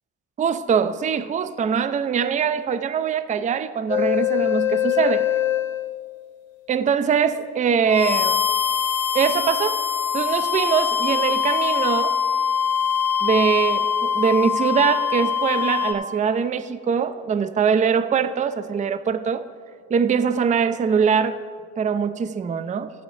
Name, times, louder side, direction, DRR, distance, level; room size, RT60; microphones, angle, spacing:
voice 1, 0.4-5.3 6.7-8.4 9.1-9.8 10.1-12.2 13.2-19.4 19.9-21.4 21.8-22.9, right 6 dB, 20° right, 0.4 m, -22 dB
sound 1, 3.9-6.0 7.9-15.9, left 8 dB, 80° left, 0.8 m, -23 dB
14.5 x 8.1 x 3.2 m
supercardioid pair, 65°, 43 cm